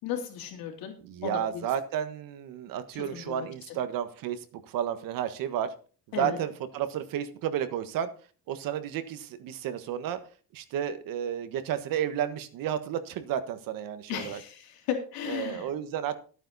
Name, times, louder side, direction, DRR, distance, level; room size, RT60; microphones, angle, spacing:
voice 1, 0.0-0.9 1.2-1.6 3.1-3.5 6.1-6.4 14.1-14.6 14.9-15.7, left 8 dB, 80° left, 2 dB, 3.5 m, -34 dB
voice 2, 1.0-5.7 6.1-8.1 8.5-10.2 10.5-14.4 15.3-16.2, right 10 dB, 70° right, 10 dB, 1.5 m, -32 dB
14.5 x 8.9 x 4.1 m, 0.40 s
cardioid pair, 135°, 35 cm